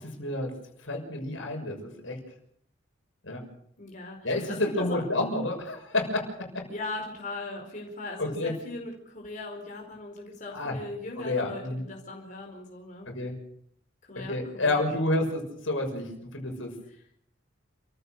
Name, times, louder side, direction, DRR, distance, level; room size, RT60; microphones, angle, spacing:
voice 1, 0.2-0.5 0.8-2.2 3.2-3.4 4.2-6.2 6.5-6.6 8.2-8.5 10.5-10.7 11.2-11.8 13.1-13.3 14.3-16.7, left 2 dB, 80° left, 2 dB, 6.4 m, -29 dB
voice 2, 3.8-5.0 6.7-13.1 14.0-14.9 15.2-15.3 16.9-17.0, left 2 dB, 40° left, 0 dB, 4.8 m, -39 dB
29.5 x 15.5 x 6.7 m, 0.68 s
head